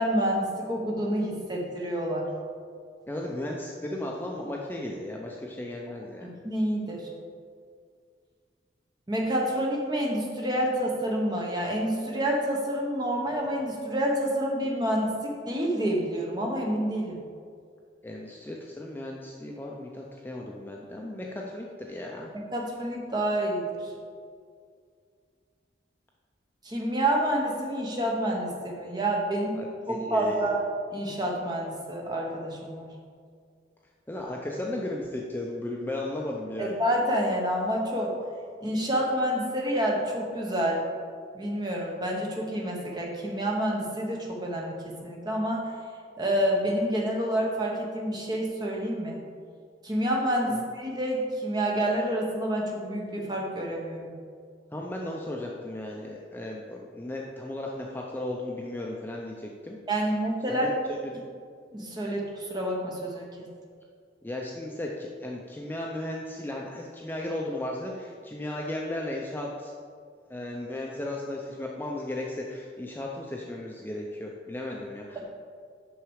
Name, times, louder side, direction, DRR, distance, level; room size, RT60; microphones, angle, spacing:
voice 1, 0.0-2.3 6.2-7.1 9.1-17.2 22.5-23.9 26.6-29.6 29.9-30.6 30.9-32.9 36.6-38.1 38.6-40.8 41.3-45.7 46.2-49.2 49.8-54.1 59.9-60.7 61.7-63.3 75.1-75.2, right 1 dB, 25° right, -2 dB, 1.1 m, -28 dB
voice 2, 3.1-6.3 18.0-22.3 29.5-30.5 34.1-36.8 50.5-50.6 54.7-59.8 60.5-60.7 61.0-61.1 64.2-69.7 70.3-75.2, left 1 dB, 10° left, -1 dB, 0.4 m, -35 dB
6.2 x 5.8 x 4.8 m, 2.1 s
head